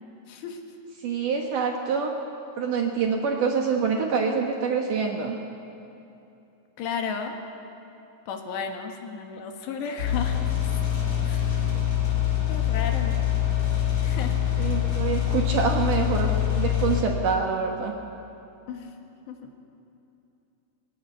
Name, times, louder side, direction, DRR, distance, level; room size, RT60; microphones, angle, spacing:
voice 1, 0.3-0.6 3.9-4.4 6.8-7.4 8.3-10.8 11.2-11.7 12.5-13.2 14.0-14.8 18.7-19.0 19.3-19.5, left 6 dB, 80° left, 4 dB, 3.8 m, -34 dB
voice 2, 1.0-2.1 2.6-5.4 14.6-18.0, right 5 dB, 65° right, 2 dB, 2.2 m, -26 dB
sound 1, 10.0-17.0, left 10 dB, 45° left, 3.5 m, -25 dB
20.5 x 18.0 x 9.3 m, 2.8 s
omnidirectional pair, 5.0 m